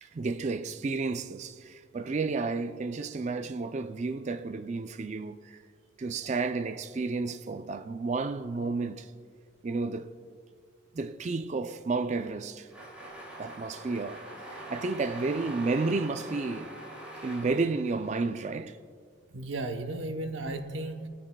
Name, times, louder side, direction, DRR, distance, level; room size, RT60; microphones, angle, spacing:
voice 1, 0.0-5.6 6.0-9.1 9.6-10.2 10.9-12.7 13.4-16.7 17.2-18.8, right 3 dB, 35° right, 0.3 m, -32 dB
sound 1, 12.7-18.4, right 1 dB, 5° right, 2.3 m, -44 dB
voice 2, 19.3-21.1, right 2 dB, 75° right, 0.8 m, -34 dB
27.5 x 10.0 x 2.2 m
head